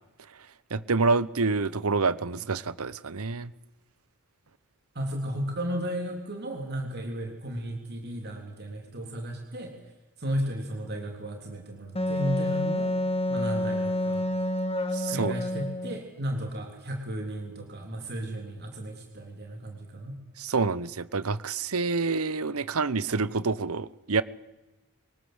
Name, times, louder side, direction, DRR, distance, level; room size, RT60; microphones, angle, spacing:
voice 1, 0.7-3.5 14.9-15.3 20.4-24.2, right 4 dB, 80° right, 0.9 m, -27 dB
voice 2, 4.9-9.7 10.2-12.9 13.3-14.3 15.1-20.2, equal, 50° right, 3.4 m, -34 dB
Wind instrument woodwind instrument, 11.9-16.0, left 1 dB, 25° left, 1.7 m, -28 dB
23.5 x 19.0 x 8.0 m
head